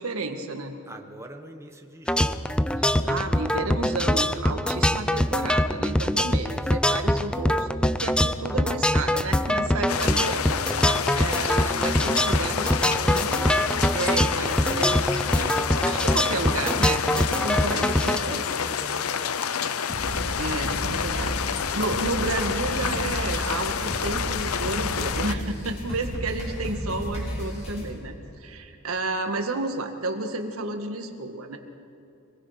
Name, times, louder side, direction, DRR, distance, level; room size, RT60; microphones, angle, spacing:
voice 1, 0.0-0.8 2.8-10.7 11.1-15.5 15.8-18.4 20.4-28.1 28.4-31.6, right 2 dB, 80° right, 5 dB, 1.9 m, -31 dB
voice 2, 0.9-2.5 6.3-6.8 12.2-13.4 17.7-21.9 26.4-26.7, right 1 dB, 15° right, 4 dB, 1.3 m, -45 dB
sound 1, 2.1-18.2, left 1 dB, 5° left, 0.6 m, -23 dB
sound 2, 9.9-25.3, left 7 dB, 80° left, 0.7 m, -28 dB
sound 3, 19.9-27.9, equal, 30° left, 5.1 m, -33 dB
26.0 x 20.0 x 5.9 m, 2.8 s
head